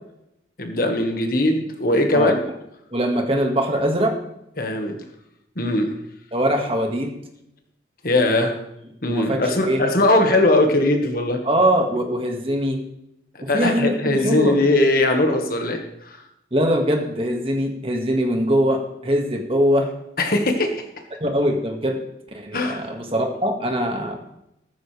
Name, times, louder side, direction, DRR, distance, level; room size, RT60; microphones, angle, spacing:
voice 1, 0.6-2.4 4.6-5.0 5.5-5.9 8.0-8.5 9.0-11.4 13.5-16.2 20.2-20.8 22.5-22.8, left 1 dB, 50° left, 4 dB, 1.7 m, -20 dB
voice 2, 2.9-4.2 6.3-7.1 8.3-8.6 9.1-9.4 9.7-9.8 11.4-12.8 13.5-14.6 16.5-19.9 21.2-22.0 22.3-24.2, equal, 30° right, 3 dB, 1.8 m, -22 dB
14.5 x 13.5 x 3.4 m, 0.81 s
head